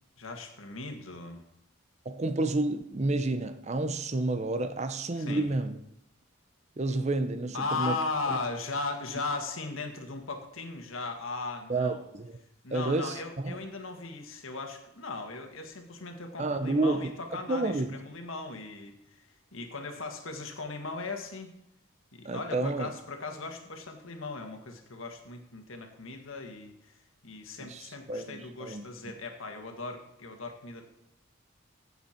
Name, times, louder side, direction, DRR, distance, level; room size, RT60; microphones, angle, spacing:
voice 1, 0.2-1.4 5.2-5.5 7.5-12.0 12.6-19.2 19.5-21.5 22.1-26.7 27.2-30.9, left 3 dB, 80° left, 1.7 m, -37 dB
voice 2, 2.1-5.8 6.8-8.0 8.3-8.4 11.7-12.4 12.7-13.6 16.4-17.1 17.5-17.9 22.2-22.9 27.6-28.8, right 2 dB, 35° right, 0.6 m, -30 dB
15.5 x 6.9 x 4.4 m
head